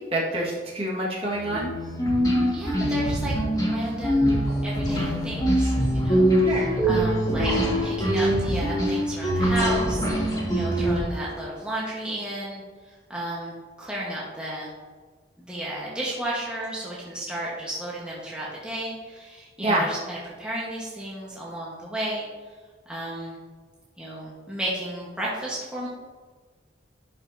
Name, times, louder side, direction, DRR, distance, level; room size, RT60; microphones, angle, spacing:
voice 1, 0.0-1.7 6.5-6.7 19.6-19.9, right 1 dB, 30° right, -4 dB, 1.7 m, -27 dB
sound 1, 1.4-11.0, equal, 20° left, 1.9 m, -23 dB
voice 2, 2.5-6.4 6.9-7.5 7.8-14.7 15.4-22.2 22.9-23.4 24.0-25.9, right 1 dB, 5° right, -6 dB, 1.3 m, -33 dB
11.5 x 5.3 x 2.8 m, 1.5 s
head